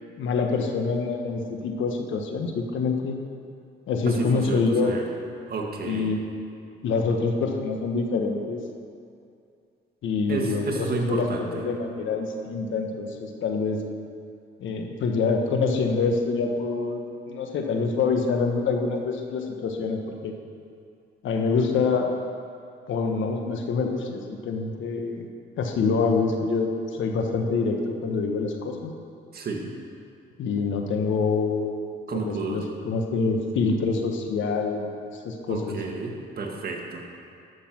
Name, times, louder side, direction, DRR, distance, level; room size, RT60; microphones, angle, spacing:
voice 1, 0.2-3.2 3.9-4.9 5.8-6.2 6.8-8.6 10.0-13.8 14.6-17.0 17.3-20.3 21.2-22.1 22.9-25.3 25.6-28.9 30.4-34.9 35.2-35.8, left 4 dB, 75° left, 3 dB, 1.4 m, -26 dB
voice 2, 4.2-5.0 5.5-6.1 10.3-11.5 29.3-29.7 32.1-32.6 35.5-37.0, right 4 dB, 50° right, 1 dB, 1.9 m, -31 dB
13.0 x 6.8 x 6.0 m, 2.5 s
cardioid pair, 90°, 20 cm